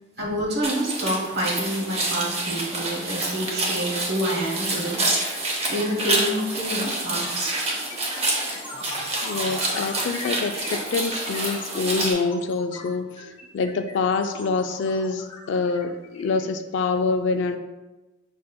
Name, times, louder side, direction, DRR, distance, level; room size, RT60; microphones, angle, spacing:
voice 1, 0.2-7.6, right 1 dB, 55° right, -3 dB, 1.1 m, -28 dB
sound 1, 0.6-12.1, right 2 dB, 35° right, 0.7 m, -28 dB
sound 2, 2.7-16.9, left 2 dB, 25° left, 0.6 m, -40 dB
voice 2, 9.2-17.6, left 4 dB, 70° left, 8 dB, 0.3 m, -26 dB
6.7 x 2.6 x 2.2 m, 1.1 s
head